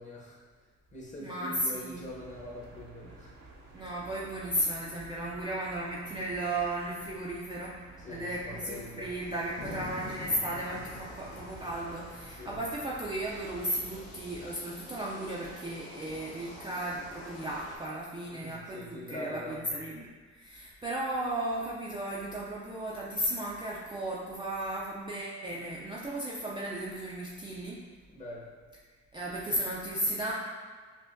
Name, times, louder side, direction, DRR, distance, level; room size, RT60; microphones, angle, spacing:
voice 1, 0.0-3.3 8.0-9.1 12.3-12.6 18.3-19.8 28.1-28.5, equal, 25° left, -5 dB, 0.9 m, -43 dB
voice 2, 1.2-2.0 3.7-7.8 8.1-27.8 29.1-30.3, right 1 dB, 15° right, -6 dB, 0.4 m, -35 dB
sound 1, 1.9-14.5, right 2 dB, 75° right, 0.7 m, -53 dB
sound 2, 8.2-17.8, left 1 dB, 80° left, 0.9 m, -50 dB
Thunder, 9.6-14.4 14.7-14.8 15.0-15.5 16.0-17.2, left 3 dB, 45° left, 0.5 m, -47 dB
5.6 x 2.1 x 2.6 m, 1.5 s
cardioid pair, 105°, 29 cm